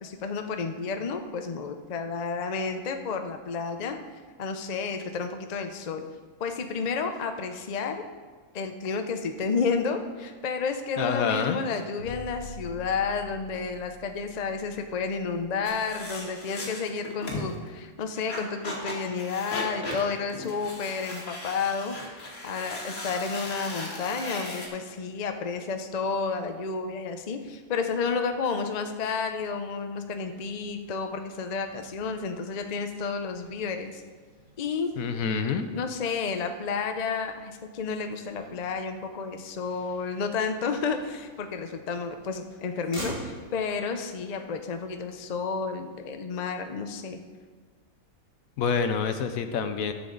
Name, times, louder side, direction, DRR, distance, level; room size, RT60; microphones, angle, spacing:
voice 1, 0.0-4.0 4.4-6.0 6.4-8.0 8.5-34.0 34.6-34.9 35.7-47.2, left 5 dB, 45° left, 6 dB, 0.6 m, -31 dB
voice 2, 11.0-11.6 35.0-35.7 48.6-49.9, left 6 dB, 75° left, 9 dB, 1.1 m, -27 dB
sound 1, 12.0-16.1, left 2 dB, 75° right, 3.3 m, -45 dB
sound 2, 15.7-17.6 18.1-24.7, left 1 dB, 60° left, 2.1 m, -37 dB
Motor vehicle (road), 30.1-46.0, right 1 dB, 20° right, 2.4 m, -48 dB
13.5 x 7.1 x 3.9 m, 1.4 s
omnidirectional pair, 1.5 m